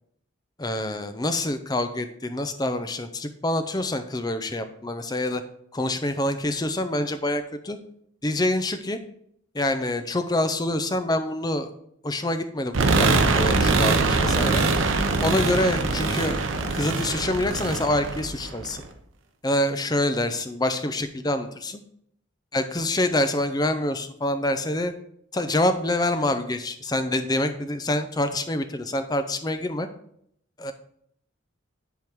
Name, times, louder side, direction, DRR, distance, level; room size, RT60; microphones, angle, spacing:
voice 1, 0.6-5.4 5.7-7.8 8.2-9.0 9.5-11.7 12.0-14.6 15.2-16.4 16.7-18.8 19.4-21.8 22.5-24.9 25.3-29.9 30.6-30.7, left 1 dB, 20° left, 9 dB, 0.6 m, -26 dB
sound 1, 12.7-18.8, right 3 dB, 75° right, 0.8 m, -23 dB
10.5 x 3.7 x 4.6 m, 0.69 s
head